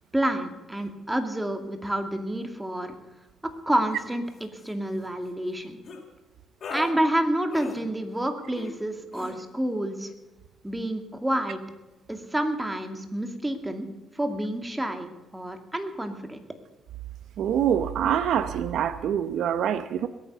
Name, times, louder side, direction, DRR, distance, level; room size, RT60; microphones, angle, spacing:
voice 1, 0.1-2.9 3.4-5.8 6.7-10.1 10.6-11.6 12.1-13.9 14.2-15.1 15.3-16.4, right 1 dB, 10° right, 6 dB, 2.4 m, -28 dB
sound 1, 3.9-4.1 4.4-4.7 5.8-6.0 6.6-6.9 7.5-7.8 8.5-8.8 9.1-9.3, left 4 dB, 55° left, 4.2 m, -38 dB
voice 2, 17.4-20.1, right 9 dB, 75° right, 13 dB, 0.8 m, -25 dB
21.0 x 9.2 x 6.8 m, 1.1 s
cardioid pair, 90°, 0 cm